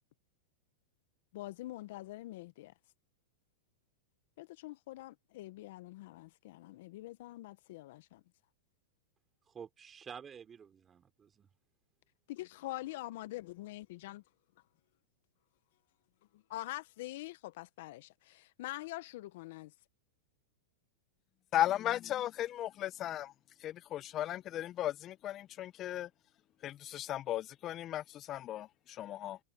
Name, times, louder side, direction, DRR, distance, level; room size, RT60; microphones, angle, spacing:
voice 1, 1.3-2.7 4.4-8.2 12.3-14.2 16.3-19.7, left 17 dB, 65° left, 0.8 m, -45 dB
voice 2, 9.5-11.5, right 7 dB, 20° right, 3.1 m, -50 dB
voice 3, 21.5-23.3 23.6-26.1 26.6-29.4, left 12 dB, 35° left, 0.5 m, -36 dB
hypercardioid pair, 120°, 0 cm